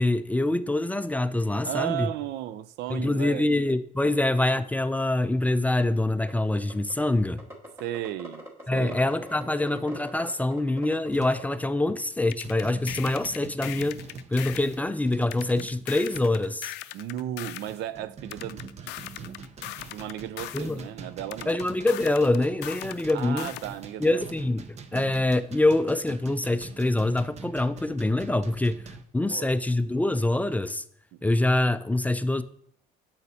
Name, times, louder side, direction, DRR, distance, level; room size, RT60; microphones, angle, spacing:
voice 1, 0.0-2.1 2.9-7.4 8.7-14.0 14.3-16.7 20.5-20.8 21.5-23.5 24.0-30.8 31.2-32.4, left 2 dB, 10° left, 0.3 m, -25 dB
voice 2, 1.6-3.6 4.0-4.2 7.8-8.5 8.7-9.0 16.9-19.3 19.7-21.5 23.1-24.3 24.9-25.1 29.2-29.5 31.1-31.2, right 12 dB, 85° right, 0.5 m, -35 dB
sound 1, 4.1-4.2 4.5-4.6 4.9-5.0 5.2-5.8 6.3-6.9 7.4-11.6, equal, 15° right, 2.2 m, -42 dB
sound 2, 10.1-10.4 11.1-11.5 12.0-12.1 12.4-16.6 17.2-29.0, right 4 dB, 40° right, 0.7 m, -44 dB
sound 3, 12.3-14.8 15.3-17.8 18.3-20.8 21.3-23.8, left 15 dB, 90° left, 0.4 m, -39 dB
9.5 x 7.3 x 2.8 m
cardioid pair, 110°, 17 cm